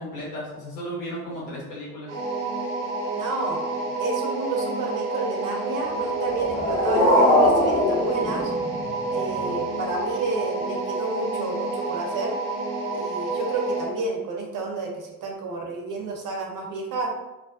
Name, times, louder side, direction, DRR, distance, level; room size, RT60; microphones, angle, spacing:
voice 1, 0.0-2.1 3.8-3.9 9.3-9.6, equal, 85° left, -6 dB, 0.9 m, -35 dB
sound 1, 2.1-13.9, right 2 dB, 80° right, 0.8 m, -29 dB
voice 2, 3.1-3.6 4.0-8.5 9.1-12.4 12.9-17.1, right 3 dB, 45° right, 0 dB, 0.7 m, -30 dB
sound 2, 6.2-9.2, left 1 dB, 5° left, 0.9 m, -21 dB
2.3 x 2.2 x 2.4 m, 1.0 s
figure-of-eight pair, 45°, 45 cm